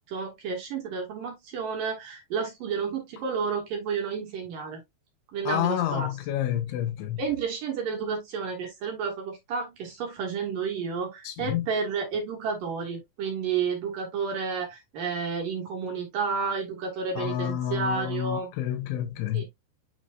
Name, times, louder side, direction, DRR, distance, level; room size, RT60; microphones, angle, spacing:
voice 1, 0.1-4.8 5.3-6.1 7.2-18.5 19.3-19.4, right 5 dB, 60° right, 2.7 m, -31 dB
voice 2, 5.5-7.2 11.2-11.7 17.2-19.4, left 11 dB, 80° left, 3.3 m, -29 dB
9.4 x 4.2 x 2.4 m
omnidirectional pair, 5.3 m